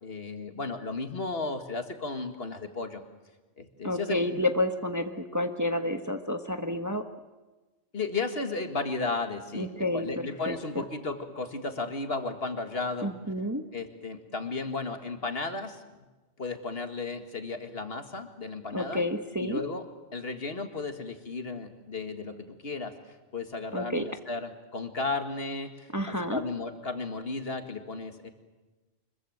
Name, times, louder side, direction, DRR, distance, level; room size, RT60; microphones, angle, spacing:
voice 1, 0.0-3.0 3.6-4.4 7.9-13.1 13.7-15.8 16.4-19.0 19.4-19.8 20.1-22.9 23.3-28.3, left 3 dB, 55° left, 7 dB, 2.1 m, -34 dB
voice 2, 3.8-7.0 9.5-10.1 10.5-10.8 13.0-13.6 18.7-19.6 23.7-24.0 25.9-26.4, left 1 dB, 15° right, 6 dB, 1.1 m, -30 dB
25.0 x 22.0 x 7.8 m, 1.2 s
omnidirectional pair, 1.2 m